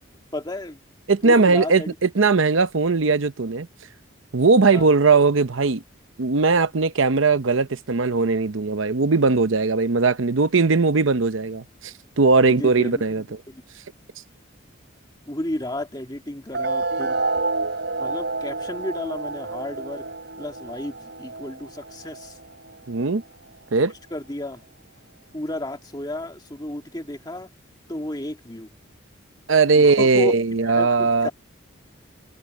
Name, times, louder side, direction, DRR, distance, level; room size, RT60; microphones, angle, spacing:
voice 1, 0.3-0.8 1.2-2.0 4.7-4.9 12.4-13.6 15.3-17.2 18.0-20.0 20.4-22.4 24.1-24.6 25.3-27.5 27.9-28.7 29.7-30.3 30.6-31.3, left 1 dB, 20° left, 2.1 m, -32 dB
voice 2, 1.1-3.7 4.3-5.8 6.2-13.2 22.9-23.2 23.7-23.9 29.5-31.3, right 4 dB, 80° right, 0.8 m, -19 dB
sound 1, 16.5-23.5, right 3 dB, 60° right, 4.1 m, -29 dB
head